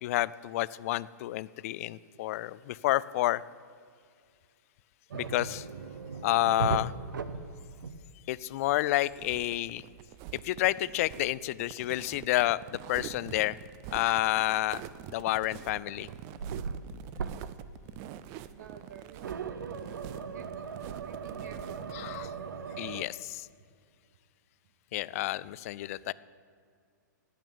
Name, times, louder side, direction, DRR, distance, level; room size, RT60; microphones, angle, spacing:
voice 1, 0.0-3.4 5.1-5.7 6.2-6.9 8.3-9.8 10.4-13.6 13.9-14.8 15.1-16.1 21.9-22.3 22.8-23.5 24.9-26.1, left 16 dB, 45° left, 19 dB, 0.3 m, -29 dB
sound 1, 5.1-8.4 8.6-8.9 12.3-12.4 14.7-15.2 15.7-17.7 18.0-18.3 19.2-23.0, right 5 dB, 85° right, 0.7 m, -38 dB
sound 2, 9.1-22.3, right 11 dB, 35° right, 0.4 m, -46 dB
voice 2, 18.5-19.3 20.3-20.5 21.0-22.0, right 8 dB, 65° right, 10 dB, 1.1 m, -50 dB
9.2 x 8.7 x 8.6 m, 2.2 s
hypercardioid pair, 135°, 10 cm